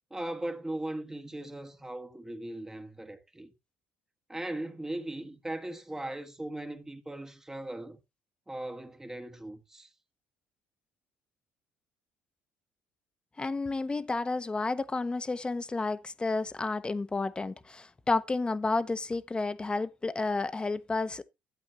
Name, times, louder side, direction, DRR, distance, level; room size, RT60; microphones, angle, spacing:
voice 1, 0.1-3.5 4.3-8.0 8.5-9.9, right 1 dB, 10° right, 1.5 m, -38 dB
voice 2, 13.4-21.2, left 3 dB, 20° left, 1.1 m, -31 dB
12.0 x 8.4 x 3.2 m
supercardioid pair, 80°, 5 cm